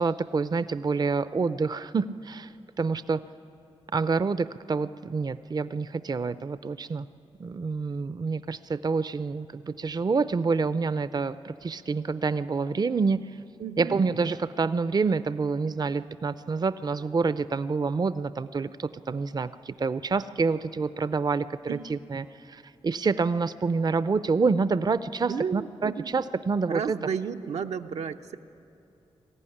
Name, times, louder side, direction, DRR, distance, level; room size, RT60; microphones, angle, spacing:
voice 1, 0.0-2.5 2.8-3.2 3.9-7.1 7.4-13.2 13.8-21.5 21.9-27.0, right 4 dB, 35° right, 14 dB, 0.5 m, -27 dB
voice 2, 13.6-14.0 21.7-21.8 25.3-26.2 26.7-28.4, right 7 dB, 80° right, 5 dB, 0.7 m, -33 dB
20.5 x 14.5 x 9.9 m, 2.8 s
cardioid pair, 55°, 11 cm